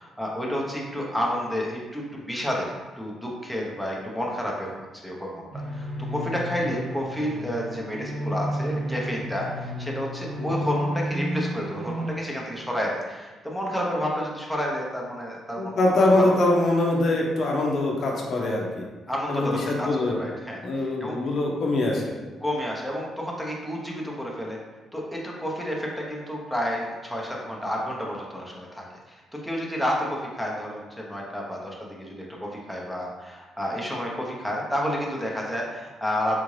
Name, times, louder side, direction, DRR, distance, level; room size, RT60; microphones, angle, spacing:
voice 1, 0.0-4.8 5.0-16.4 19.1-21.2 22.4-24.6 24.9-36.4, equal, ahead, -2 dB, 0.7 m, -30 dB
sound 1, 5.5-12.1, equal, 55° right, 0.6 m, -32 dB
voice 2, 15.6-18.8 19.3-20.2 20.6-22.1, left 2 dB, 60° left, -1 dB, 0.6 m, -23 dB
3.6 x 2.5 x 3.2 m, 1.3 s
cardioid pair, 90°, 0 cm